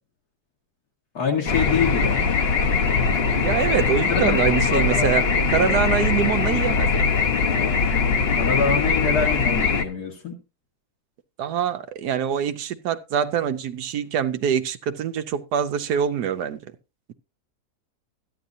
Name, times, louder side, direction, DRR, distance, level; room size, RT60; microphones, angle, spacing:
voice 1, 1.1-2.3 4.1-4.4 4.7-5.1 8.3-10.4, left 5 dB, 75° left, 2.3 m, -25 dB
sound 1, 1.5-9.8, left 5 dB, 45° left, 1.0 m, -21 dB
voice 2, 3.3-5.2 5.5-6.9 11.4-16.7, right 8 dB, 90° right, 1.3 m, -24 dB
13.5 x 10.0 x 2.7 m
omnidirectional pair, 1.7 m